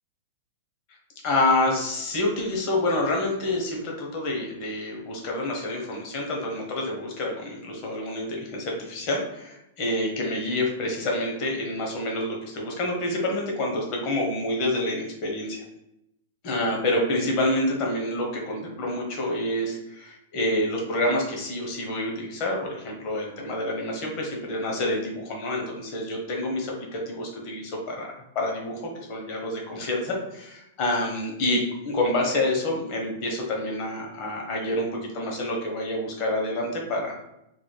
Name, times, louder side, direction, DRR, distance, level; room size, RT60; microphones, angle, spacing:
voice 1, 1.2-15.6 16.4-37.1, left 1 dB, 40° left, 0 dB, 0.9 m, -28 dB
3.8 x 2.1 x 3.2 m, 0.83 s
supercardioid pair, 150°, 0 cm